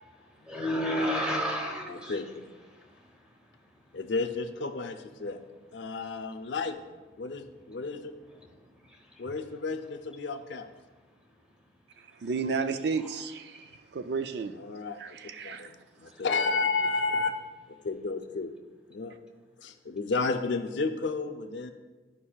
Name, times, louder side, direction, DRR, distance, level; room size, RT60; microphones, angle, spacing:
voice 1, 0.1-4.1 5.2-5.5 5.8-6.5 7.2-9.3 10.8-12.3 12.9-13.2 13.5-14.0 15.0-16.3, equal, 5° right, 1.0 m, -38 dB
voice 2, 3.9-5.4 5.7-6.8 7.2-8.1 9.2-10.7 14.6-15.2 15.4-15.7 16.0-17.3 17.7-18.5 18.9-19.1 19.6-21.7, left 4 dB, 80° left, 0.6 m, -32 dB
voice 3, 12.0-14.6 15.0-15.8, right 5 dB, 60° right, 0.4 m, -33 dB
11.5 x 5.3 x 2.4 m
head